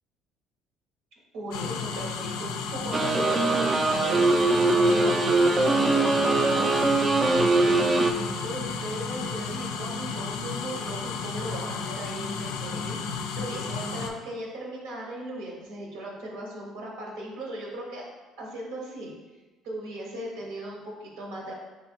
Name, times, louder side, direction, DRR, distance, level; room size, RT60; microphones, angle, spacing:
voice 1, 1.3-6.8 7.3-7.8 8.2-18.0 18.4-19.1 19.6-21.5, right 1 dB, 85° right, -1 dB, 1.1 m, -37 dB
sound 1, 1.5-14.1, left 5 dB, 85° left, 0.4 m, -33 dB
sound 2, 2.9-8.1, right 3 dB, 30° right, 0.4 m, -22 dB
3.3 x 3.2 x 4.4 m, 1.2 s
supercardioid pair, 90°, 0 cm